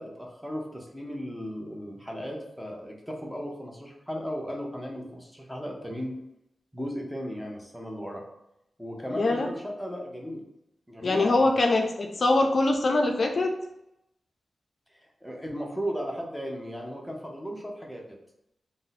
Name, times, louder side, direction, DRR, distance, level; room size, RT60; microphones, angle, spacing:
voice 1, 0.0-6.2 6.7-8.2 8.8-10.4 10.9-11.5 14.9-18.2, equal, ahead, 0 dB, 0.7 m, -36 dB
voice 2, 9.1-9.5 11.0-13.6, left 2 dB, 55° left, 3 dB, 0.3 m, -23 dB
2.6 x 2.0 x 3.9 m, 0.84 s
cardioid pair, 65°, 0 cm